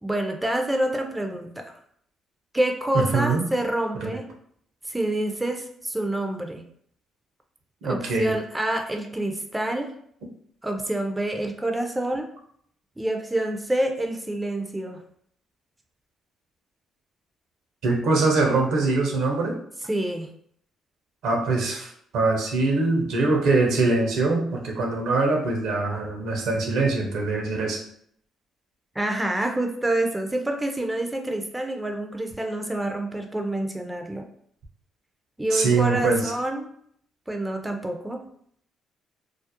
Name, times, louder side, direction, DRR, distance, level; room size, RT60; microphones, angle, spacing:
voice 1, 0.0-1.8 2.5-4.2 4.9-6.6 7.8-9.9 10.6-12.3 13.0-15.0 19.9-20.3 29.0-34.2 35.4-36.7 37.3-38.2, right 1 dB, 15° right, 4 dB, 0.4 m, -27 dB
voice 2, 2.9-3.4 4.1-4.2 7.8-8.3 17.8-19.6 21.2-27.8 35.5-36.3, right 3 dB, 75° right, 0 dB, 0.6 m, -23 dB
2.4 x 2.0 x 2.7 m, 0.66 s
supercardioid pair, 60°, 0 cm